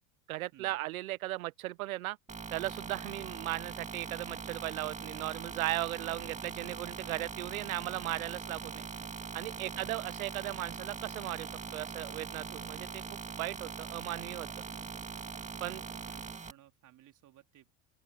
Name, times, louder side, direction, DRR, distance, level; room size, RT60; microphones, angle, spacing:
voice 1, 0.3-2.2 2.5-8.8 9.3-13.0 13.4-14.5 15.6-15.8, right 17 dB, 85° right, 0.9 m, -37 dB
sound 1, 2.3-16.5, right 5 dB, 15° right, 1.8 m, -42 dB
voice 2, 6.0-6.4 8.6-9.1 9.6-10.1 15.4-17.7, right 13 dB, 45° right, 3.8 m, -58 dB
open air
hypercardioid pair, 90°, 41 cm